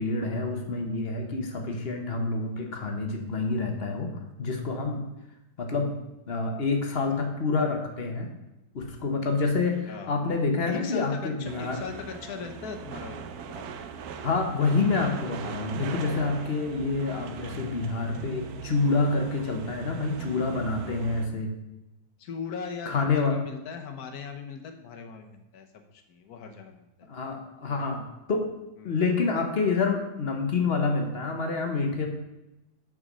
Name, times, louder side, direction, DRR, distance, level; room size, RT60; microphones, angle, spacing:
voice 1, 0.0-5.0 5.6-6.0 6.3-8.3 8.7-11.8 14.2-21.5 22.9-23.4 27.1-28.4 28.8-32.1, left 4 dB, 40° left, 3 dB, 1.1 m, -27 dB
voice 2, 9.9-10.2 10.7-13.6 22.2-25.7 25.9-27.1 28.8-29.0, left 6 dB, 70° left, 6 dB, 1.4 m, -39 dB
sound 1, 11.5-21.3, right 6 dB, 70° right, 1.1 m, -40 dB
6.4 x 5.3 x 6.1 m, 0.95 s
omnidirectional pair, 1.8 m